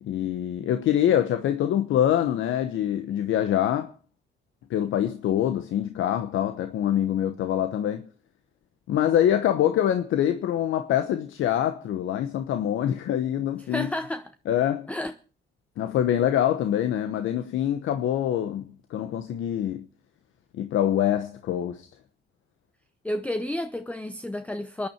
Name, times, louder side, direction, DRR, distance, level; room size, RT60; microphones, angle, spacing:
voice 1, 0.0-3.9 4.7-8.1 8.9-13.9 14.5-14.9 15.8-19.8 20.5-21.9, left 10 dB, 80° left, 1.1 m, -25 dB
voice 2, 13.6-14.3 14.9-15.1 23.0-24.9, left 1 dB, 5° left, 0.7 m, -31 dB
25.5 x 10.0 x 4.5 m
cardioid pair, 90°, 20 cm